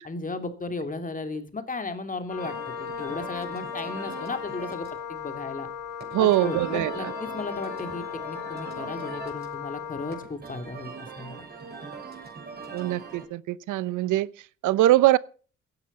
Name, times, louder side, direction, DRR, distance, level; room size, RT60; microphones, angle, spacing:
voice 1, 0.0-5.7 6.2-11.4, left 3 dB, 25° left, 2.7 m, -35 dB
Wind instrument woodwind instrument, 2.3-10.3, left 8 dB, 80° left, 6.0 m, -37 dB
sound 1, 2.4-13.2, right 4 dB, 30° right, 6.8 m, -42 dB
voice 2, 6.1-7.1 12.7-15.2, right 15 dB, 85° right, 0.7 m, -23 dB
16.5 x 9.7 x 5.6 m
cardioid pair, 90°, 30 cm